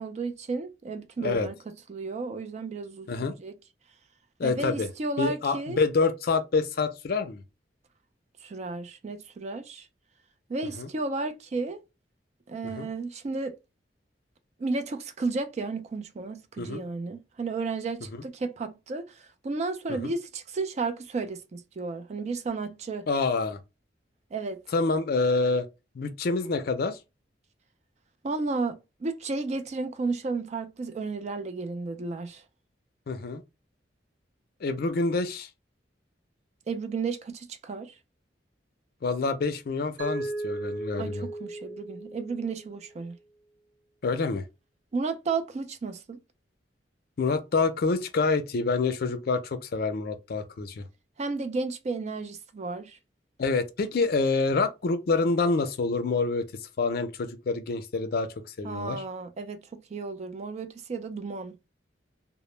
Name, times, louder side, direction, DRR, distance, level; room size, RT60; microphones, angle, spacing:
voice 1, 0.0-3.5 4.4-5.8 8.4-9.9 10.5-11.8 12.5-13.6 14.6-23.1 24.3-24.6 28.2-32.4 36.7-38.0 41.0-43.2 44.9-46.2 51.2-53.0 58.6-61.6, right 3 dB, 40° right, 0.3 m, -33 dB
voice 2, 4.4-4.9 5.2-7.4 10.8-10.9 12.6-12.9 16.6-16.8 18.1-18.2 20.0-20.1 23.1-23.6 24.7-25.7 26.0-27.0 33.1-33.4 34.6-35.5 39.0-41.3 44.0-44.4 47.2-50.9 53.4-56.5 56.8-58.3 58.6-59.0, left 4 dB, 55° left, 0.4 m, -27 dB
Mallet percussion, 40.0-42.9, right 2 dB, 80° right, 0.8 m, -36 dB
2.0 x 2.0 x 3.0 m
head